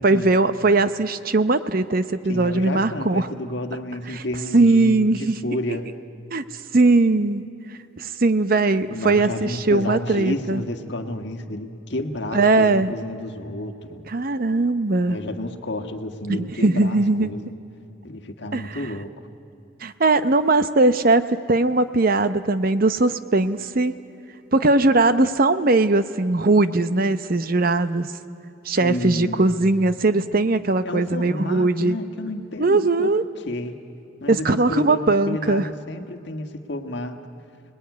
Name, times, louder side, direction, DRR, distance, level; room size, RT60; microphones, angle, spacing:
voice 1, 0.0-3.3 4.1-4.2 4.5-5.4 6.3-6.4 6.7-7.4 8.0-10.6 12.3-12.9 14.1-15.2 16.3-17.3 18.5-18.8 19.8-23.9 24.5-28.1 28.6-32.0 32.6-33.2 34.3-35.7, right 2 dB, 45° right, 12 dB, 0.7 m, -20 dB
voice 2, 2.3-5.9 8.9-14.0 15.1-17.5 18.0-19.1 28.8-29.6 30.8-33.1 33.4-33.7 34.2-37.2, left 1 dB, 55° left, 6 dB, 1.6 m, -31 dB
29.5 x 20.0 x 9.5 m, 2.9 s
head